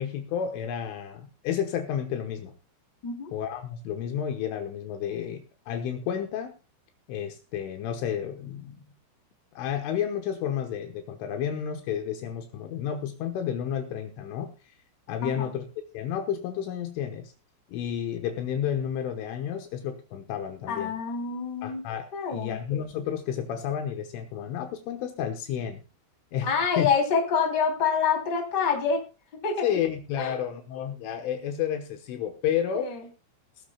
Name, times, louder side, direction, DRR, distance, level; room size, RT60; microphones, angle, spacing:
voice 1, 0.0-2.5 3.3-6.5 7.1-8.9 9.6-14.5 15.1-15.7 15.9-17.3 17.7-20.9 21.6-25.8 26.3-26.9 29.6-32.9, left 9 dB, 75° left, 5 dB, 3.5 m, -31 dB
voice 2, 20.7-21.8 22.1-22.6 26.4-29.0 29.4-29.6 30.2-30.4 32.7-33.0, left 6 dB, 25° left, 2 dB, 2.8 m, -26 dB
19.0 x 13.0 x 2.3 m, 0.31 s
omnidirectional pair, 6.0 m